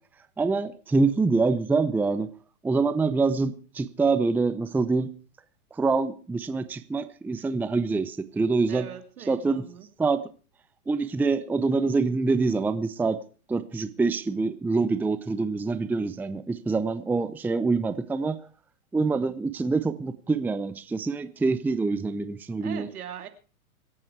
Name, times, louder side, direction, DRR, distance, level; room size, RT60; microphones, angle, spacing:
voice 1, 0.4-2.3 2.6-5.1 5.7-8.9 9.3-9.6 10.0-10.2 10.9-13.2 13.5-18.4 18.9-22.9, right 4 dB, 5° right, 0.6 m, -25 dB
voice 2, 8.7-9.9 22.6-23.3, right 9 dB, 75° right, 2.9 m, -40 dB
25.5 x 8.7 x 4.7 m
hypercardioid pair, 115°, 45 cm